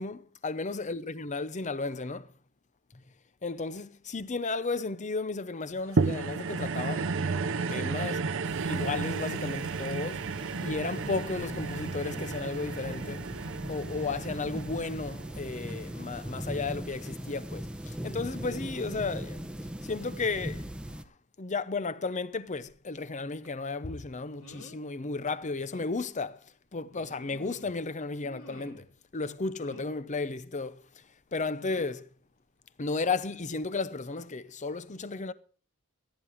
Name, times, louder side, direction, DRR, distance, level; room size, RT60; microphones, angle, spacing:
voice 1, 0.0-2.3 3.4-7.1 7.7-8.3 8.6-10.2 10.6-13.2 13.7-19.4 19.8-20.7 21.4-26.4 26.7-28.9 29.1-30.8 31.3-32.1 32.8-35.3, left 3 dB, 35° left, 0.7 m, -34 dB
sound 1, 6.0-16.5 17.1-17.2, right 4 dB, 60° right, 0.7 m, -33 dB
sound 2, 8.4-21.0, equal, 5° right, 0.8 m, -40 dB
sound 3, 23.4-23.6 24.4-24.9 25.3-25.4 25.7-26.0 26.9-27.8 28.2-29.0 29.6-30.0 31.6-32.0 33.2-33.4 33.8-33.9, left 1 dB, 75° left, 3.2 m, -50 dB
14.0 x 9.6 x 5.0 m
head